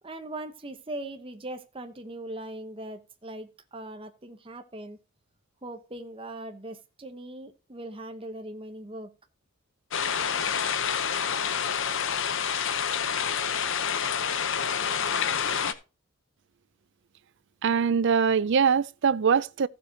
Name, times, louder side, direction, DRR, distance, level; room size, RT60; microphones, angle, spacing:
voice 1, 0.0-5.0 5.6-9.1, right 1 dB, 25° right, 0.9 m, -40 dB
sound 1, 9.9-15.7, left 7 dB, 55° left, 0.8 m, -28 dB
voice 2, 17.6-19.7, right 6 dB, 50° right, 0.4 m, -23 dB
15.5 x 7.4 x 2.8 m
head